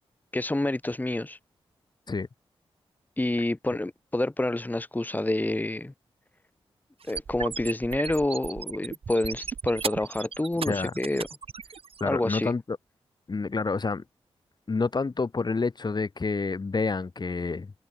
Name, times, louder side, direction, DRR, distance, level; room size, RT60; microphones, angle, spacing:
voice 1, 0.3-1.4 3.2-5.9 7.1-11.3 12.0-12.5, left 1 dB, 15° left, 2.2 m, -28 dB
sound 1, 7.0-12.0, right 6 dB, 70° right, 3.7 m, -36 dB
voice 2, 12.0-12.8 13.3-14.0 14.7-17.7, left 4 dB, 45° left, 4.4 m, -28 dB
cardioid pair, 75°, 10 cm